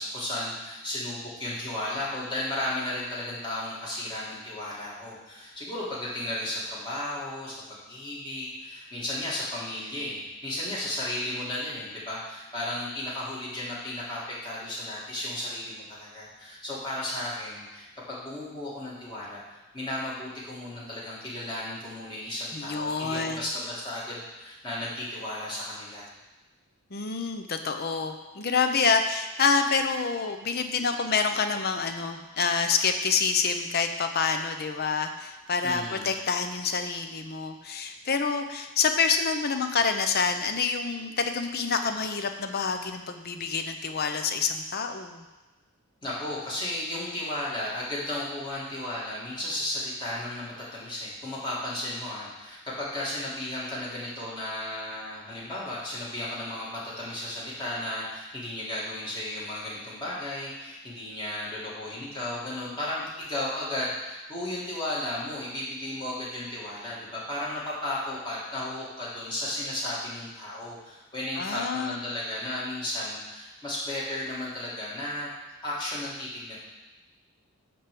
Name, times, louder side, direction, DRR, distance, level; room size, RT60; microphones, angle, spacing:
voice 1, 0.0-26.1 35.6-36.1 46.0-75.3 75.6-76.6, left 1 dB, 20° left, -7 dB, 2.4 m, -34 dB
voice 2, 22.5-23.4 26.9-45.2 71.4-72.0, left 5 dB, 45° left, 7 dB, 0.7 m, -27 dB
10.0 x 3.4 x 6.9 m, 1.1 s
head